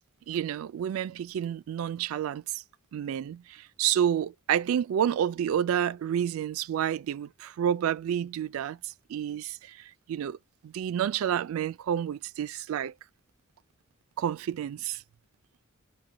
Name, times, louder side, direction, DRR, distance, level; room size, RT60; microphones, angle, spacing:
voice 1, 0.3-2.6 2.9-10.4 10.6-12.9 14.2-15.0, right 9 dB, 90° right, 0.3 m, -29 dB
4.9 x 2.2 x 2.7 m
head